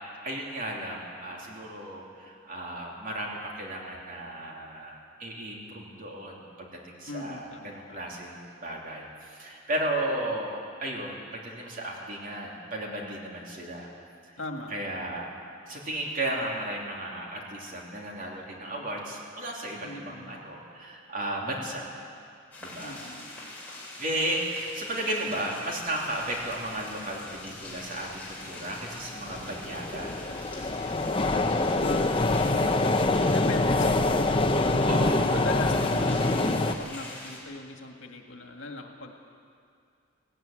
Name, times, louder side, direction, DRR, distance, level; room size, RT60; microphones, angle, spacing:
voice 1, 0.2-13.9 14.7-15.3 15.7-21.9 22.6-23.0 24.0-30.1 34.9-35.3, right 1 dB, 45° right, -2 dB, 3.2 m, -34 dB
voice 2, 7.1-8.2 14.4-15.1 19.8-20.5 21.6-21.8 22.8-23.5 31.8-32.4 33.3-34.9 35.3-39.1, left 2 dB, 80° left, 3 dB, 1.9 m, -40 dB
sound 1, 22.5-37.4, left 2 dB, 10° left, 4.5 m, -44 dB
sound 2, 28.1-28.2 28.8-36.7, left 2 dB, 25° left, 0.8 m, -25 dB
18.0 x 17.0 x 9.1 m, 2.3 s
head